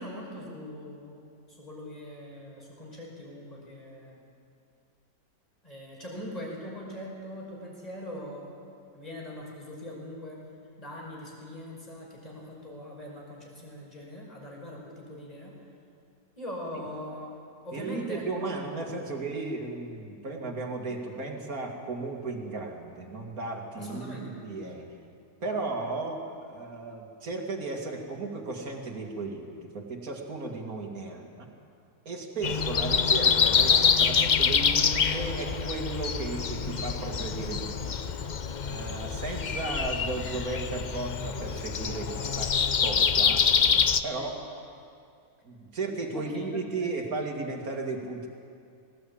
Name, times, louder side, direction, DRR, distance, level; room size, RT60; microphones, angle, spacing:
voice 1, 0.0-4.2 5.6-8.6 8.9-10.4 10.8-15.6 16.4-17.3 17.6-18.5 23.8-24.3 46.1-46.5 46.8-46.9, equal, 20° left, -2 dB, 5.5 m, -41 dB
voice 2, 17.7-24.9 25.4-31.5 32.1-37.9 38.7-42.5 42.8-44.4 45.4-48.3, right 3 dB, 60° right, 1 dB, 2.8 m, -35 dB
Breathing, 32.4-44.0, left 6 dB, 70° left, 0.4 m, -26 dB
19.5 x 18.0 x 8.7 m, 2.4 s
omnidirectional pair, 1.8 m